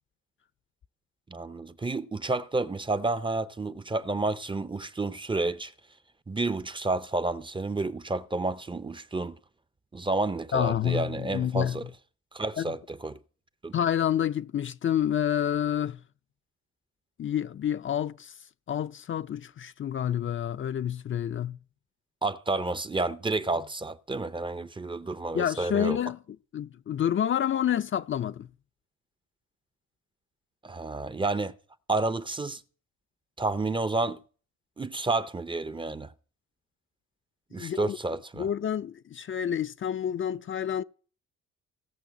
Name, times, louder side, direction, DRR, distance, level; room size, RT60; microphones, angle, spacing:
voice 1, 1.3-5.7 6.3-9.4 9.9-11.8 12.3-13.2 13.6-13.7 22.2-26.0 30.6-31.5 31.9-32.6 33.4-34.2 34.8-36.1 37.5-38.5, right 3 dB, 15° right, 0.6 m, -30 dB
voice 2, 10.5-11.8 12.6-12.7 13.7-16.0 17.2-18.4 18.7-21.6 25.3-26.2 26.5-28.5 37.5-38.0 38.4-40.8, left 9 dB, 40° left, 0.5 m, -28 dB
17.0 x 5.7 x 7.4 m
cardioid pair, 90°, 30 cm